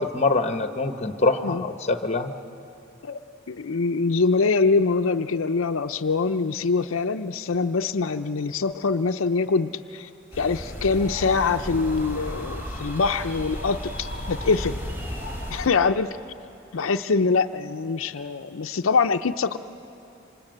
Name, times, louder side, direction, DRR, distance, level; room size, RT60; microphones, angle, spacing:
voice 1, 0.0-2.3, left 3 dB, 35° left, 8 dB, 1.1 m, -24 dB
voice 2, 3.5-10.1 10.4-14.8 15.5-16.1 16.7-19.6, left 4 dB, 80° left, 7 dB, 0.6 m, -24 dB
sound 1, 10.3-15.7, left 1 dB, 10° right, 3.6 m, -34 dB
27.5 x 26.0 x 7.9 m, 3.0 s
head